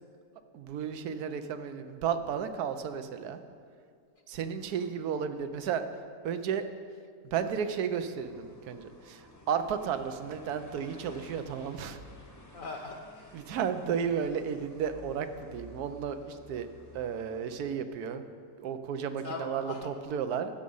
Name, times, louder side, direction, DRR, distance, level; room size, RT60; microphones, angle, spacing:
voice 1, 0.5-3.4 4.3-5.8 6.2-6.7 7.2-12.0 13.3-16.7 16.9-18.2 18.6-20.5, right 7 dB, 90° right, 9 dB, 1.2 m, -33 dB
sound 1, 8.2-17.6, left 1 dB, 15° left, 0.7 m, -53 dB
voice 2, 12.2-13.4 19.2-19.9, left 3 dB, 65° left, 3 dB, 1.1 m, -41 dB
15.5 x 6.3 x 5.5 m, 2.2 s
omnidirectional pair, 1.6 m